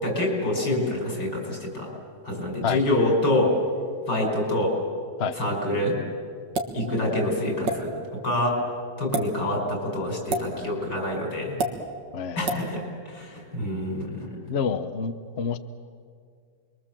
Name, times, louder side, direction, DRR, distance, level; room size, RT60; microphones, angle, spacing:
voice 1, 0.0-1.9 2.2-3.5 4.1-4.7 5.4-6.0 6.7-8.6 9.0-11.6 12.4-14.4, left 1 dB, 80° left, 0 dB, 6.1 m, -26 dB
sound 1, 6.5-6.8 7.6-7.8 9.0-9.3 10.3-10.5 11.6-11.7 12.5-12.6, right 2 dB, 85° right, 2.5 m, -26 dB
voice 2, 12.1-12.6 14.5-15.6, left 6 dB, 45° left, 10 dB, 1.0 m, -28 dB
28.5 x 22.5 x 7.5 m, 2.2 s
omnidirectional pair, 1.9 m